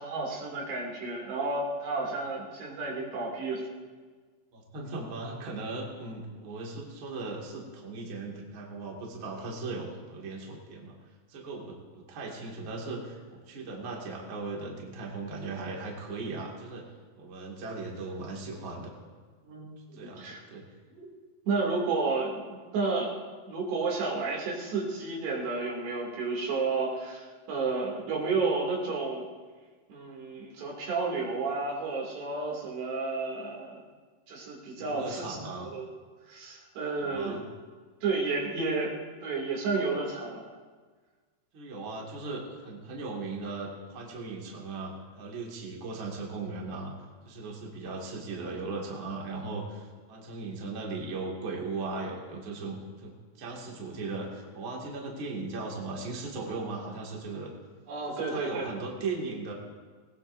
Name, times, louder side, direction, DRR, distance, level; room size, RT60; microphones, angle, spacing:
voice 1, 0.0-3.7 19.4-20.4 21.0-21.1 21.5-23.2 23.5-29.2 29.9-33.8 34.3-35.9 36.3-37.4 38.0-38.9 39.2-40.5 57.9-58.7, right 3 dB, 80° right, -3 dB, 4.8 m, -31 dB
voice 2, 4.5-10.9 11.3-16.8 17.2-19.0 19.9-20.7 34.7-35.7 37.0-37.4 41.5-46.9 47.2-57.5 58.1-59.5, right 3 dB, 35° right, -2 dB, 2.4 m, -38 dB
20.5 x 19.5 x 2.7 m, 1.5 s
omnidirectional pair, 4.7 m